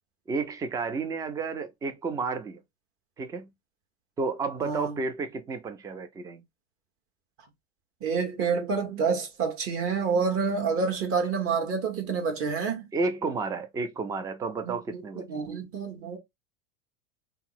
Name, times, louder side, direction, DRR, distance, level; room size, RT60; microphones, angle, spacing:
voice 1, 0.3-2.6 3.2-3.5 4.2-6.4 12.9-15.5, right 4 dB, 10° right, 0.3 m, -31 dB
voice 2, 4.6-5.0 8.0-12.9 14.6-16.2, right 5 dB, 40° right, 1.2 m, -28 dB
2.8 x 2.0 x 3.7 m
hypercardioid pair, 110°, 35 cm